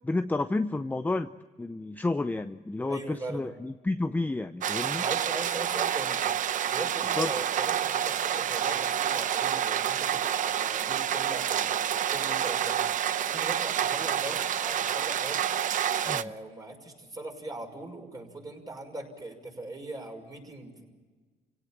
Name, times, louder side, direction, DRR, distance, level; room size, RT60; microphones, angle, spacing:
voice 1, 0.0-1.3 1.6-5.0 7.2-7.3 16.0-16.3, left 2 dB, 10° left, 9 dB, 0.6 m, -30 dB
voice 2, 2.8-3.5 4.9-6.2 6.6-12.8 13.3-15.6 16.0-20.8, right 2 dB, 20° right, 2 dB, 6.0 m, -40 dB
sound 1, 4.6-16.2, right 9 dB, 50° right, 0.7 m, -28 dB
29.0 x 17.5 x 7.5 m, 1.4 s
cardioid pair, 110°, 17 cm